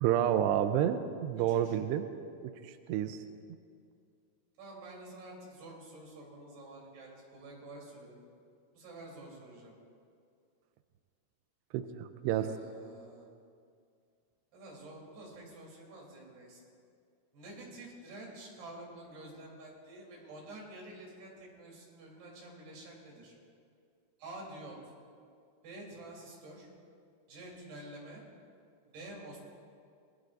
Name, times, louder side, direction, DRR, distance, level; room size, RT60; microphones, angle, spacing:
voice 1, 0.0-2.0 2.4-2.5 2.9-3.2 11.7-12.5, right 10 dB, 85° right, 9 dB, 2.4 m, -29 dB
voice 2, 1.5-1.8 4.6-8.1 8.7-9.7 12.3-13.3 14.5-16.6 17.3-23.3 24.2-24.8 25.6-26.7 27.3-28.2 28.9-29.4, right 2 dB, 60° right, -3 dB, 5.2 m, -49 dB
27.0 x 20.0 x 2.6 m, 2.3 s
omnidirectional pair, 5.5 m